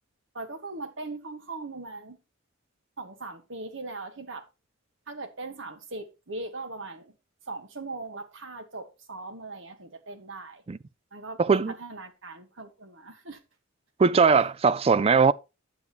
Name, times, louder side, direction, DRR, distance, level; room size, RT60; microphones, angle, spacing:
voice 1, 0.3-2.2 3.0-4.5 5.1-7.1 7.5-10.6 11.1-13.4, right 3 dB, 65° right, 1.4 m, -39 dB
voice 2, 11.4-11.7 14.0-15.3, right 5 dB, 30° right, 0.3 m, -20 dB
9.9 x 7.2 x 3.0 m
head